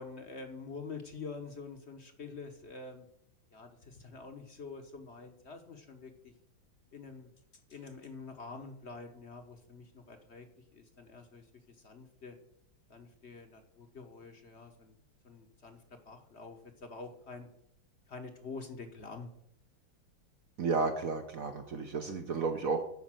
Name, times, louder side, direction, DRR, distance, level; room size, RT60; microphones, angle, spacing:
voice 1, 0.0-3.1 3.5-6.3 6.9-7.3 7.7-10.5 10.7-12.4 12.9-14.9 15.2-17.5 18.1-19.3, left 4 dB, 40° left, 6 dB, 1.0 m, -47 dB
voice 2, 20.6-22.9, right 4 dB, 60° right, 7 dB, 0.9 m, -32 dB
12.5 x 5.3 x 7.5 m, 0.72 s
omnidirectional pair, 2.3 m